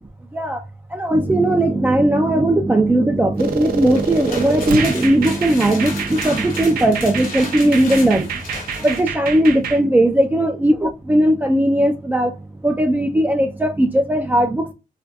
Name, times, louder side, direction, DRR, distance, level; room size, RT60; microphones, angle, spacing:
voice 1, 0.9-8.3 8.8-12.3 12.6-14.7, right 1 dB, 10° right, 0.3 m, -17 dB
sound 1, 3.4-9.8, right 6 dB, 85° right, 0.4 m, -27 dB
sound 2, 3.7-9.1, left 3 dB, 65° left, 1.2 m, -34 dB
2.5 x 2.2 x 2.5 m
cardioid pair, 85°, 15 cm